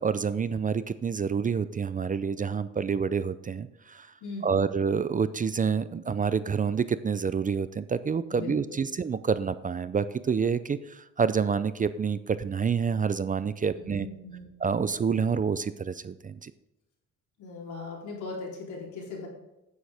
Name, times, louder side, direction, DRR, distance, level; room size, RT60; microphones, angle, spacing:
voice 1, 0.0-4.1 4.4-14.1 14.6-16.5, right 6 dB, 25° right, 14 dB, 0.4 m, -28 dB
voice 2, 4.2-4.7 8.3-8.6 13.8-14.5 17.4-19.3, left 3 dB, 75° left, -2 dB, 3.6 m, -39 dB
9.3 x 8.8 x 3.5 m, 0.96 s
cardioid pair, 90°, 30 cm